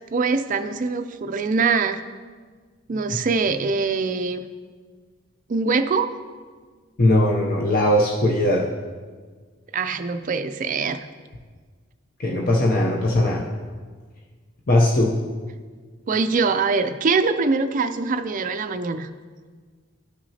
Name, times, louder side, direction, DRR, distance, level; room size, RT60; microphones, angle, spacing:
voice 1, 0.1-2.0 2.9-4.4 5.5-6.1 9.7-11.1 16.1-19.1, right 4 dB, 40° right, 9 dB, 0.4 m, -23 dB
voice 2, 7.0-8.7 12.2-13.5 14.7-15.1, left 1 dB, 45° left, -2 dB, 0.6 m, -19 dB
13.0 x 5.9 x 2.8 m, 1.5 s
head